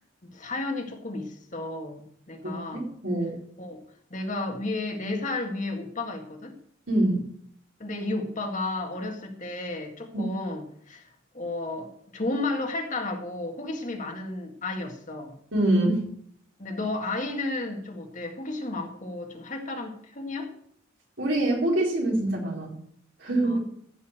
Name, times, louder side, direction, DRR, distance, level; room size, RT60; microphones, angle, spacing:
voice 1, 0.2-2.9 3.6-3.8 4.1-6.5 7.8-15.3 16.6-20.5 23.4-23.6, left 2 dB, 40° left, 3 dB, 1.9 m, -33 dB
voice 2, 2.4-3.3 6.9-7.2 10.1-10.2 15.5-16.0 21.2-22.7 23.2-23.6, right 1 dB, 70° right, -2 dB, 4.7 m, -25 dB
15.0 x 5.6 x 7.8 m, 0.65 s
head